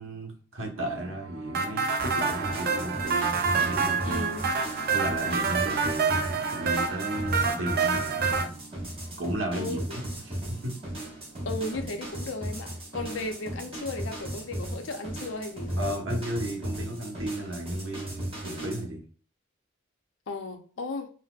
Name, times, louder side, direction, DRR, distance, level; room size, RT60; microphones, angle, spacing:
voice 1, 0.0-4.3 4.9-8.5 9.2-10.7 15.8-19.0, right 1 dB, 70° right, 1.0 m, -34 dB
sound 1, 0.8-17.6, right 3 dB, 90° right, 0.7 m, -50 dB
sound 2, 1.5-8.5, right 5 dB, 50° right, 0.4 m, -27 dB
sound 3, 2.0-18.8, right 1 dB, 30° right, 0.9 m, -36 dB
voice 2, 4.0-4.5 9.6-9.8 11.5-15.9 20.3-21.1, left 2 dB, 65° left, 0.5 m, -35 dB
3.9 x 2.0 x 2.3 m
head